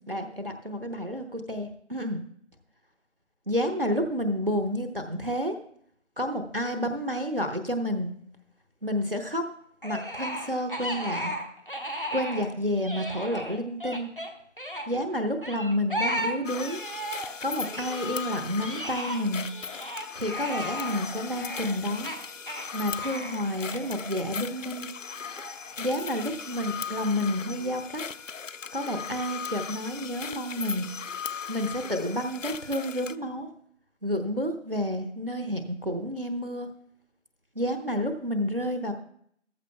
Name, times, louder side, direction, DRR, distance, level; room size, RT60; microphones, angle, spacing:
voice 1, 0.1-2.2 3.5-5.6 6.2-8.1 8.8-9.5 9.8-11.3 12.1-14.1 14.9-16.8 17.4-19.4 20.1-22.1 22.7-24.9 25.8-28.0 28.7-30.9 31.5-33.5 34.0-36.7 37.6-38.9, equal, 50° right, 6 dB, 0.9 m, -30 dB
sound 1, 9.8-12.5 12.7-14.9 15.4-17.4 17.6-24.6 25.2-26.6, equal, 45° left, 1.2 m, -36 dB
sound 2, 16.4-33.1, left 6 dB, 90° left, 0.6 m, -38 dB
14.0 x 13.5 x 2.3 m, 0.67 s
figure-of-eight pair, 180°, 37 cm